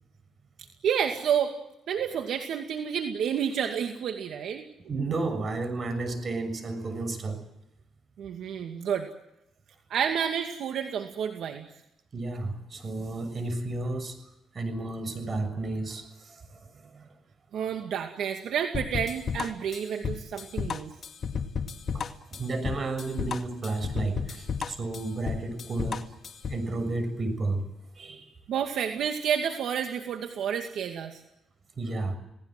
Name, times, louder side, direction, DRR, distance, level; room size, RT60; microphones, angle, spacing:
voice 1, 0.6-1.5 1.9-4.6 8.2-9.1 9.9-11.7 17.5-20.9 28.5-31.2, right 8 dB, 70° right, 4 dB, 2.3 m, -30 dB
voice 2, 4.9-7.4 12.1-14.2 14.5-17.1 21.9-26.0 26.5-27.7 27.9-28.3 31.7-32.2, right 2 dB, 40° right, 11 dB, 6.7 m, -32 dB
sound 1, 18.7-26.7, left 6 dB, 50° left, 2.2 m, -33 dB
30.0 x 19.0 x 7.8 m, 0.87 s
cardioid pair, 90°, 0 cm